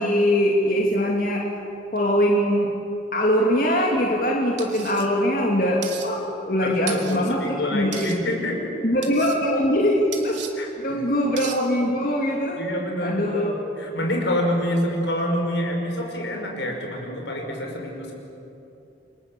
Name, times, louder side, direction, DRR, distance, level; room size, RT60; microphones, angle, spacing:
voice 1, 0.0-1.4 1.9-2.7 3.1-7.9 8.8-10.4 10.8-12.6 13.0-13.5, equal, 50° left, -1 dB, 2.7 m, -22 dB
sound 1, 4.6-5.1 5.8-6.1 6.9-7.2 7.9-8.2 9.0-9.4 10.1-10.5 11.4-11.6, right 10 dB, 90° right, 2.7 m, -35 dB
voice 2, 6.6-8.7 10.6-11.0 12.6-13.5 13.8-18.1, left 1 dB, 85° left, 2 dB, 5.7 m, -27 dB
28.5 x 24.5 x 7.3 m, 2.9 s
head